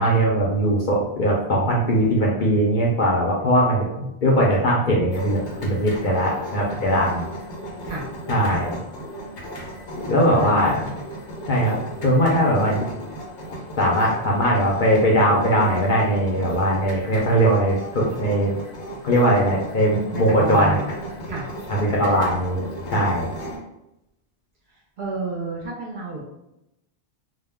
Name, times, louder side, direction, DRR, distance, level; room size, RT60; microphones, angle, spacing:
voice 1, 0.0-7.3 8.3-8.8 10.1-10.9 11.5-12.8 13.8-18.6 19.0-20.8 21.7-22.7 22.9-23.3, equal, 55° left, -3 dB, 0.6 m, -20 dB
sound 1, 5.1-23.6, right 1 dB, 80° left, 1.0 m, -36 dB
voice 2, 10.1-10.7 20.1-20.9 21.2-21.5 25.0-26.2, right 3 dB, 55° right, -2 dB, 0.6 m, -30 dB
2.2 x 2.1 x 3.4 m, 0.87 s
omnidirectional pair, 1.1 m